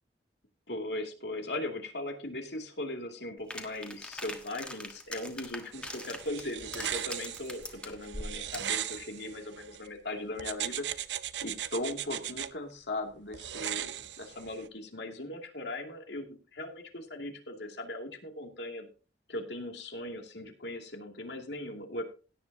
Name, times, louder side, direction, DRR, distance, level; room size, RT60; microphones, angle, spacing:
voice 1, 0.7-10.9 11.4-18.9 19.3-22.0, left 1 dB, 70° left, 3 dB, 2.6 m, -39 dB
sound 1, 3.5-8.8, left 1 dB, 5° left, 1.4 m, -43 dB
sound 2, 5.7-9.9 10.4-12.5 13.3-14.7, right 10 dB, 80° right, 0.7 m, -38 dB
17.0 x 9.7 x 2.8 m, 0.34 s
head